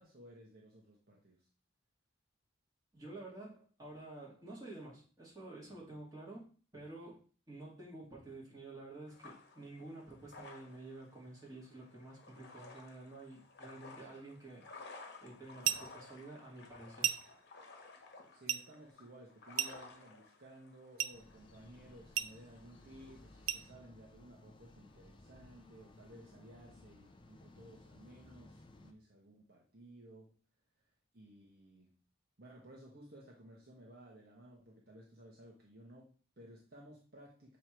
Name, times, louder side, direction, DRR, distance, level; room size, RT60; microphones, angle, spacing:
voice 1, 0.0-1.5 18.3-30.4 31.1-32.0 32.4-37.6, right 1 dB, 50° right, -2 dB, 1.2 m, -57 dB
voice 2, 2.9-7.2 7.5-14.6 15.2-17.2, right 2 dB, 20° right, -5 dB, 2.4 m, -50 dB
sound 1, 9.1-23.7, left 3 dB, 55° left, 1.2 m, -56 dB
sound 2, 15.6-16.0 17.0-17.4 18.5-18.7 19.6-20.0 21.0-21.2 22.2-22.4 23.5-23.7, right 11 dB, 75° right, 0.4 m, -35 dB
sound 3, 21.1-28.9, left 2 dB, 25° left, 0.5 m, -59 dB
6.7 x 3.2 x 4.4 m, 0.39 s
head